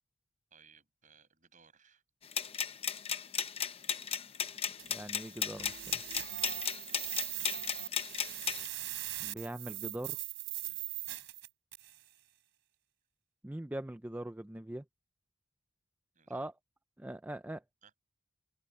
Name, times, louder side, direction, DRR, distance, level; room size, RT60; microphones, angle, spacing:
voice 1, 0.5-2.0 6.3-8.0 10.6-10.8 16.1-16.4 17.8-17.9, right 6 dB, 35° right, 7.9 m, -63 dB
sound 1, 2.3-8.7, left 7 dB, 25° left, 0.7 m, -35 dB
sound 2, 4.8-12.0, right 16 dB, 55° right, 3.9 m, -41 dB
voice 2, 4.9-6.0 9.2-10.2 13.4-14.8 16.3-16.5 17.0-17.6, right 1 dB, 10° right, 0.4 m, -41 dB
open air
head